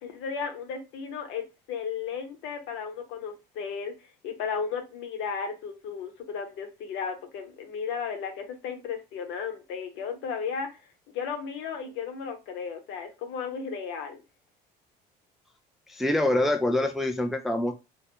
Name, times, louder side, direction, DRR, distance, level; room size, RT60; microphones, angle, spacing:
voice 1, 0.0-3.9 4.2-10.7 11.1-14.2, left 6 dB, 65° left, 0.8 m, -34 dB
voice 2, 15.9-17.7, left 1 dB, ahead, 0.3 m, -25 dB
2.1 x 2.1 x 2.9 m
hypercardioid pair, 70°, 21 cm